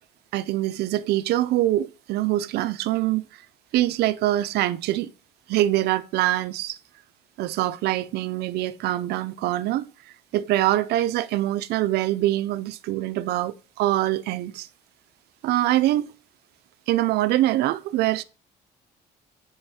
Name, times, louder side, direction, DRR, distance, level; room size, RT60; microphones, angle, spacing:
voice 1, 0.3-3.3 3.7-5.1 5.5-6.8 7.4-9.9 10.3-14.7 15.4-16.1 16.9-18.2, right 15 dB, 75° right, 0.5 m, -24 dB
5.3 x 4.7 x 4.2 m
cardioid pair, 110°, 17 cm